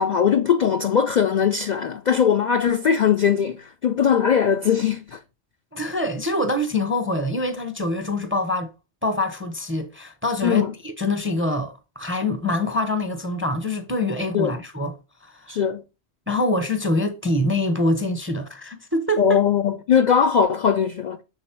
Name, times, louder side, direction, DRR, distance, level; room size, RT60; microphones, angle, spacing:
voice 1, 0.0-5.2 10.4-10.7 14.3-14.6 15.5-15.8 19.2-21.2, left 7 dB, 60° left, 0.4 m, -20 dB
voice 2, 5.7-8.7 9.0-14.9 15.2-15.6 16.3-19.4, left 1 dB, 15° right, 0.5 m, -25 dB
6.3 x 3.9 x 4.3 m
omnidirectional pair, 1.2 m